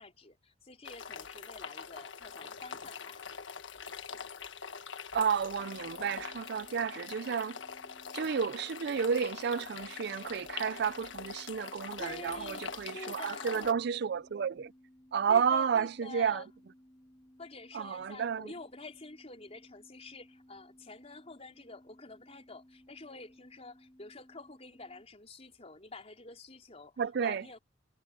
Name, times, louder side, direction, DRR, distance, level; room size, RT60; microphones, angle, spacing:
voice 1, 0.0-3.2 12.0-13.7 15.3-16.5 17.4-27.6, left 3 dB, 35° left, 4.4 m, -48 dB
sound 1, 0.8-13.7, left 6 dB, 90° left, 1.4 m, -44 dB
voice 2, 5.1-7.6 8.1-14.7 15.1-16.4 17.7-18.5 27.0-27.4, right 7 dB, 60° right, 0.4 m, -31 dB
sound 2, 5.6-25.0, equal, 15° left, 4.2 m, -60 dB
head